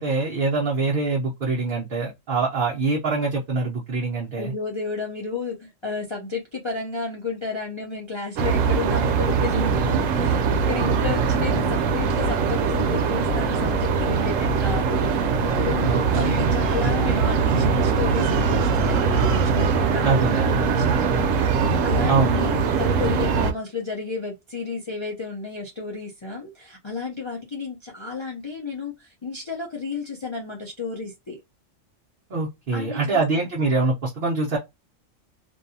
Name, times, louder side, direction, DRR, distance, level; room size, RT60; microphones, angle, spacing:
voice 1, 0.0-4.5 15.8-17.2 17.5-17.8 20.0-20.6 22.1-22.5 32.3-34.6, right 3 dB, 50° right, 0.8 m, -24 dB
voice 2, 4.4-31.4 32.7-33.2, left 4 dB, 30° left, 0.5 m, -32 dB
sound 1, 8.4-23.5, right 5 dB, 80° right, 1.0 m, -22 dB
2.6 x 2.3 x 2.6 m
omnidirectional pair, 1.3 m